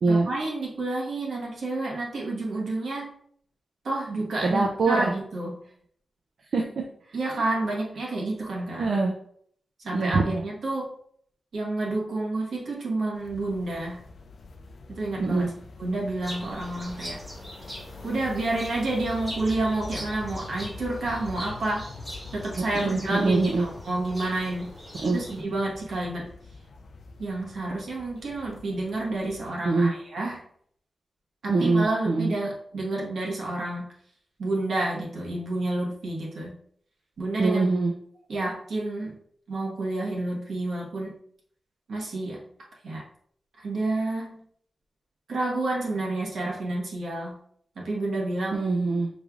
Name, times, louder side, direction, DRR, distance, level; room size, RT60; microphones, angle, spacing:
voice 1, 0.1-3.1 3.8-5.6 7.1-8.9 9.8-10.9 11.5-14.0 14.9-15.5 15.8-17.2 18.0-21.9 22.3-24.7 25.1-26.3 27.2-30.4 31.4-33.9 34.4-36.6 37.2-37.6 38.3-39.2 39.5-41.1 41.9-42.5 42.8-43.0 43.6-44.4 45.3-47.4 47.8-48.6, right 2 dB, 85° right, -2 dB, 1.2 m, -29 dB
voice 2, 4.4-5.1 6.5-7.4 8.8-9.1 9.9-10.4 15.2-15.5 22.6-23.7 25.0-25.2 29.6-29.9 31.5-32.3 37.4-37.9 48.5-49.1, right 3 dB, 65° right, 1 dB, 0.5 m, -24 dB
sound 1, 13.2-29.5, left 3 dB, 65° left, 0.4 m, -44 dB
sound 2, 16.2-25.4, equal, 15° right, 1.5 m, -42 dB
5.2 x 3.2 x 2.4 m, 0.63 s
wide cardioid pair, 145°, 0 cm